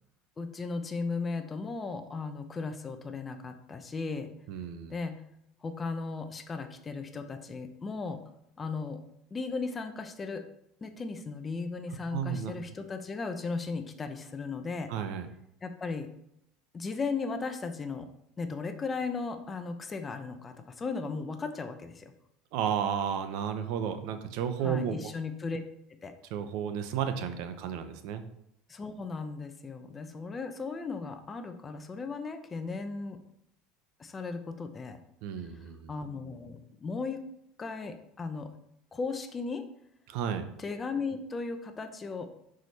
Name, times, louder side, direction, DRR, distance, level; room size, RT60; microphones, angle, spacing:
voice 1, 0.4-4.3 4.9-5.2 5.6-8.2 8.6-9.0 9.3-10.4 10.8-14.9 15.6-16.1 16.7-18.1 18.4-22.1 24.6-25.6 26.0-26.1 28.7-33.2 34.0-35.0 35.9-37.2 37.6-38.5 38.9-39.6 40.6-42.3, left 4 dB, 20° left, 8 dB, 0.6 m, -36 dB
voice 2, 4.5-4.9 12.1-12.5 14.9-15.3 22.5-25.0 26.3-28.2 35.2-35.9 40.1-40.5, right 8 dB, 65° right, 9 dB, 0.7 m, -32 dB
6.1 x 4.9 x 4.1 m, 0.78 s
supercardioid pair, 130°, 0 cm